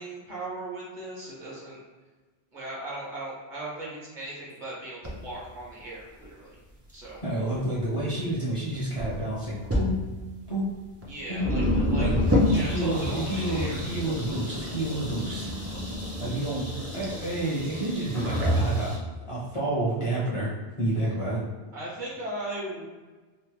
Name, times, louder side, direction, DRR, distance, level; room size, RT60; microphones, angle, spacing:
voice 1, 0.0-1.8 2.5-6.6 6.9-7.2 11.1-11.6 11.9-12.1 12.5-13.8 21.7-22.8, right 1 dB, 50° right, -6 dB, 1.0 m, -37 dB
sound 1, 5.0-5.1 6.2-6.3 6.9-7.0 7.5-8.3 8.7-9.2 9.6-9.9 10.7-10.8 11.0-11.1 11.4-19.0, left 1 dB, 25° right, 0.3 m, -28 dB
voice 2, 7.2-10.0 10.5-10.8 11.3-11.5 12.0-12.1 12.5-15.5 16.2-18.9 19.3-20.5 20.8-21.4, right 1 dB, 35° left, -7 dB, 0.6 m, -29 dB
3.0 x 2.0 x 3.1 m, 1.3 s
omnidirectional pair, 1.1 m